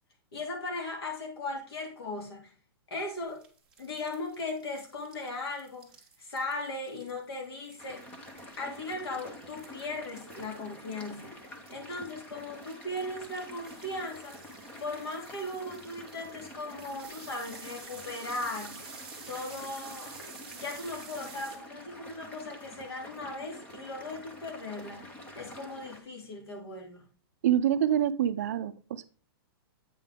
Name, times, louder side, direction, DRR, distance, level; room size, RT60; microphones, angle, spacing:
voice 1, 0.3-2.5 2.9-3.4 3.8-5.9 6.2-8.0 8.6-11.4 11.7-14.4 14.8-18.8 19.3-20.2 20.5-27.0, left 2 dB, 85° left, 2 dB, 3.0 m, -38 dB
sound 1, 3.2-21.6, right 5 dB, 5° right, 1.3 m, -51 dB
sound 2, 7.8-26.0, left 1 dB, 10° left, 0.7 m, -48 dB
voice 2, 27.4-29.1, right 10 dB, 40° right, 13 dB, 0.4 m, -26 dB
8.4 x 5.3 x 3.6 m, 0.37 s
hypercardioid pair, 175°, 13 cm